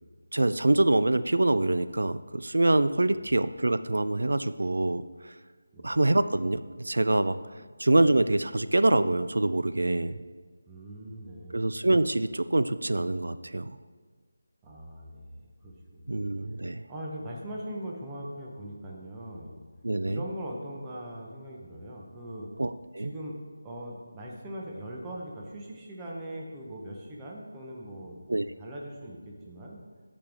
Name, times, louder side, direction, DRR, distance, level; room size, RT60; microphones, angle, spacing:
voice 1, 0.3-5.0 5.8-7.4 7.8-10.2 11.5-13.7 16.1-16.8 19.8-20.2 22.6-23.1 28.3-28.5, right 2 dB, 90° right, 13 dB, 0.4 m, -25 dB
voice 2, 10.7-11.7 14.6-16.2 16.9-19.6 20.0-22.5 23.0-23.4 23.6-29.8, right 1 dB, 10° right, -3 dB, 0.6 m, -41 dB
13.0 x 5.1 x 3.4 m, 1.5 s
figure-of-eight pair, 175°, 0 cm